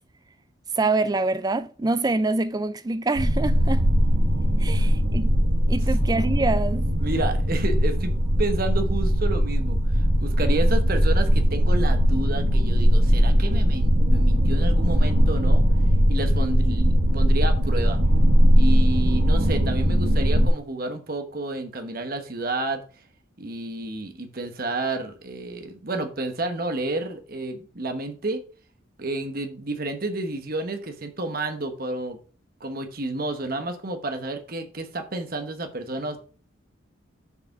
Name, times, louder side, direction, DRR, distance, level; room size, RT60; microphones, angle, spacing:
voice 1, 0.8-3.9 4.6-5.3 5.7-6.9, right 3 dB, 20° right, 0.3 m, -25 dB
sound 1, 3.1-20.5, equal, 75° right, 1.6 m, -20 dB
voice 2, 4.6-5.0 5.8-5.9 7.0-8.1 8.4-15.6 16.1-18.0 18.5-22.8 23.4-28.4 29.0-32.2 32.6-36.2, right 2 dB, 45° right, 1.1 m, -30 dB
6.8 x 4.8 x 5.9 m
head